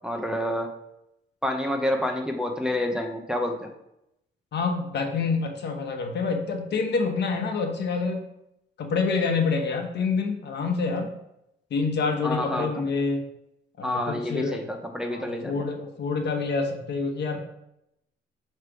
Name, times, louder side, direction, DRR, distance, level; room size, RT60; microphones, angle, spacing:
voice 1, 0.0-0.7 1.4-3.7 12.2-12.8 13.8-15.6, left 1 dB, 5° right, 2 dB, 0.7 m, -28 dB
voice 2, 4.5-8.3 8.8-11.1 11.7-13.2 13.8-14.6 15.1-17.4, left 4 dB, 60° left, 4 dB, 1.1 m, -27 dB
6.4 x 3.3 x 4.8 m, 0.83 s
cardioid pair, 90°, 20 cm